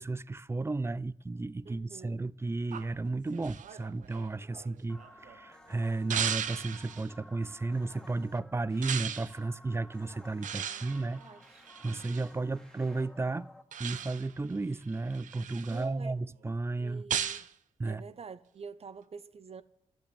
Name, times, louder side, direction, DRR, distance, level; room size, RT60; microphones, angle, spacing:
voice 1, 0.0-11.2 11.8-13.5 13.8-17.1 17.8-18.0, right 3 dB, 20° right, 0.4 m, -33 dB
voice 2, 1.6-2.3 10.5-11.6 15.7-16.2 16.8-17.5 17.8-19.6, right 5 dB, 50° right, 0.9 m, -47 dB
sound 1, 2.7-5.3 6.1-7.1 8.8-9.3 10.4-12.3 13.7-14.4 14.9-15.8 17.1-17.5, right 9 dB, 80° right, 0.7 m, -37 dB
sound 2, 4.8-13.6, left 1 dB, 5° left, 1.7 m, -55 dB
12.0 x 9.1 x 8.6 m
cardioid pair, 65°, 13 cm